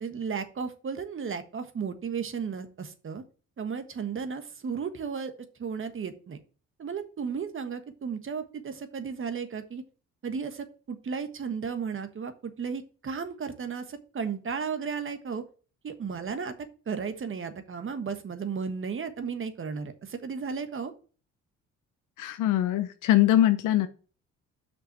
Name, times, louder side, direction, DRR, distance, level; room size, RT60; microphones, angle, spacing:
voice 1, 0.0-3.2 3.6-5.3 5.6-6.4 6.8-9.8 10.2-15.4 15.8-16.5 16.9-20.9, right 6 dB, 45° right, 9 dB, 1.3 m, -34 dB
voice 2, 22.2-23.9, left 13 dB, 85° left, 10 dB, 0.7 m, -22 dB
6.1 x 5.5 x 6.5 m, 0.38 s
cardioid pair, 90°, 30 cm